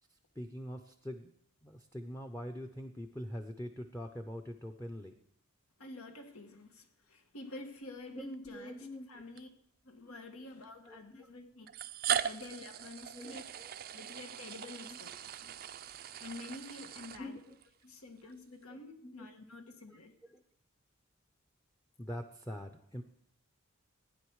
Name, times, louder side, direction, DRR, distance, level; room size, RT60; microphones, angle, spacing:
voice 1, 0.1-1.3 1.6-5.1 8.1-9.2 10.0-10.2 10.6-11.3 12.1-12.2 13.1-13.7 17.2-17.6 18.7-19.1 19.9-20.0 20.3-20.4 22.0-23.0, equal, 10° left, 0.7 m, -44 dB
voice 2, 5.8-9.5 9.8-11.7 12.2-13.4 13.9-15.6 16.2-17.4 17.8-20.1, left 2 dB, 85° left, 1.7 m, -49 dB
sound 1, 8.2-8.3 9.4-9.5 10.6-10.7 11.7-17.7, right 9 dB, 45° right, 0.4 m, -39 dB
15.5 x 9.9 x 4.8 m
head